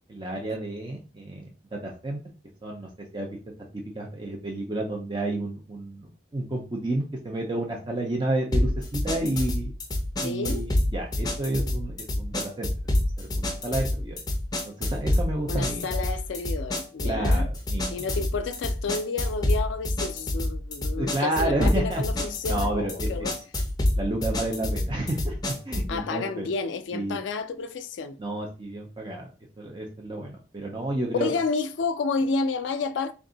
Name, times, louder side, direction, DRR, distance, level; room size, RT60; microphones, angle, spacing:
voice 1, 0.1-2.2 2.6-3.4 3.9-9.7 10.2-12.7 13.0-14.2 14.7-15.9 17.0-18.1 21.0-23.3 24.0-26.5 26.9-27.2 28.2-31.3, right 1 dB, 25° right, 0.6 m, -31 dB
sound 1, 8.5-26.0, left 1 dB, 20° left, 0.6 m, -27 dB
voice 2, 10.2-10.6 15.5-17.5 17.9-23.4 25.9-28.2 31.2-33.1, left 4 dB, 75° left, 0.4 m, -30 dB
3.4 x 2.6 x 3.9 m
head